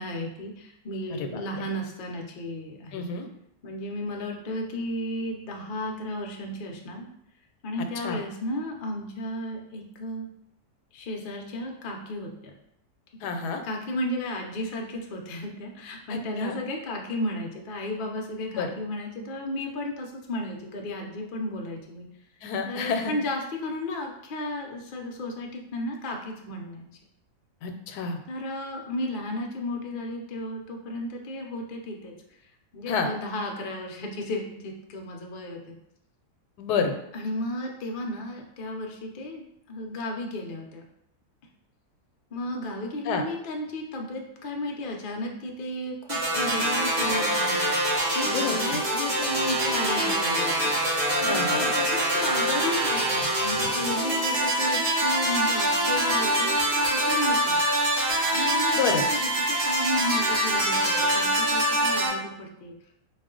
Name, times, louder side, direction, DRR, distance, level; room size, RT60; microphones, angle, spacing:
voice 1, 0.0-3.0 3.6-7.1 7.6-10.3 10.9-12.5 13.6-22.1 22.6-26.9 28.3-32.1 32.7-35.7 37.1-40.8 42.3-57.6 58.3-62.7, left 1 dB, 55° left, 1 dB, 0.5 m, -34 dB
voice 2, 2.9-3.3 8.0-8.2 13.2-13.6 16.1-16.6 18.5-18.7 22.4-23.1 27.6-28.2 32.9-33.1 36.6-36.9 43.0-43.2 48.2-48.8 51.2-51.7 53.5-53.7 58.7-59.0, left 5 dB, 80° left, 6 dB, 1.1 m, -29 dB
sound 1, 46.1-62.1, right 1 dB, 45° right, 1.3 m, -24 dB
4.1 x 2.4 x 3.7 m, 0.77 s
omnidirectional pair, 1.7 m